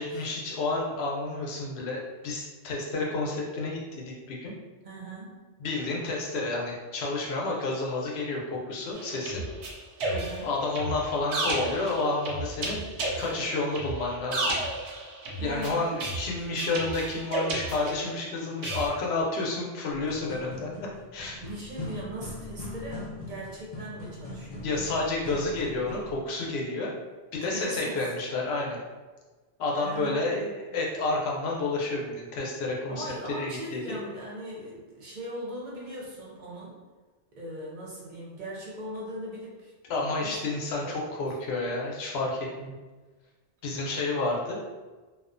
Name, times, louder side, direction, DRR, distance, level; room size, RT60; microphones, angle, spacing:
voice 1, 0.0-4.5 5.6-9.4 10.4-12.9 13.2-14.6 15.4-21.4 24.6-26.9 27.3-28.8 29.6-33.0 33.4-33.9 39.9-42.7 43.6-44.6, left 2 dB, 75° left, -2 dB, 0.8 m, -30 dB
voice 2, 4.8-5.4 10.1-10.5 15.3-15.9 21.3-24.7 27.3-28.0 29.8-30.7 32.9-36.8 37.4-39.7 40.2-40.4 40.8-41.2, right 1 dB, 55° right, -4 dB, 0.6 m, -39 dB
sound 1, 8.9-18.2 18.6-18.9, right 2 dB, 85° right, 0.9 m, -33 dB
sound 2, 20.0-26.2, left 2 dB, 50° left, 0.5 m, -41 dB
2.4 x 2.1 x 2.4 m, 1.3 s
omnidirectional pair, 1.1 m